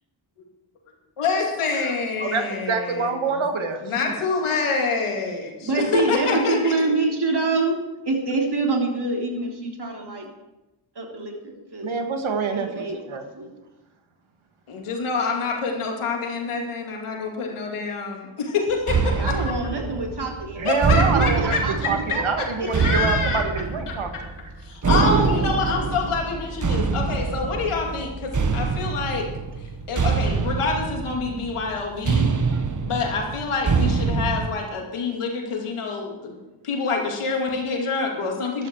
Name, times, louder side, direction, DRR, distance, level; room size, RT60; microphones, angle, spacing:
voice 1, 1.2-3.4 3.8-6.7 14.7-19.6 20.6-21.9 22.7-23.4 23.9-24.0 24.6-29.3 29.9-32.3 32.8-36.4 36.6-38.7, left 4 dB, 85° left, 0 dB, 2.7 m, -26 dB
voice 2, 2.2-4.2 11.8-13.3 20.6-24.3 25.1-25.2 32.5-32.6, right 4 dB, 70° right, 6 dB, 1.9 m, -26 dB
voice 3, 5.6-7.8 8.1-10.3 11.0-11.9 12.5-13.5 19.0-20.7 21.0-22.9 38.6-38.7, right 3 dB, 50° right, 0 dB, 3.7 m, -26 dB
sound 1, 18.9-34.5, right 4 dB, 35° right, 1.3 m, -25 dB
13.5 x 11.5 x 4.7 m, 1.0 s
cardioid pair, 45°, 49 cm